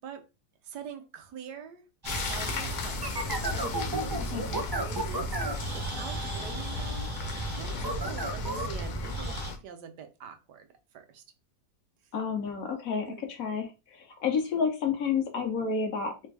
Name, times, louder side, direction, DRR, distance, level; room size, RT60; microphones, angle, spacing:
voice 1, 0.6-1.8 2.3-3.2 3.5-5.4 5.7-7.1 7.6-10.7 10.9-11.2 13.1-13.3, right 7 dB, 75° right, 1.3 m, -44 dB
sound 1, 2.0-9.5, right 2 dB, 35° right, 0.3 m, -34 dB
sound 2, 2.1-9.6, left 5 dB, 80° left, 1.4 m, -37 dB
voice 2, 12.1-16.3, left 6 dB, 60° left, 1.1 m, -30 dB
3.3 x 3.3 x 3.3 m
omnidirectional pair, 1.9 m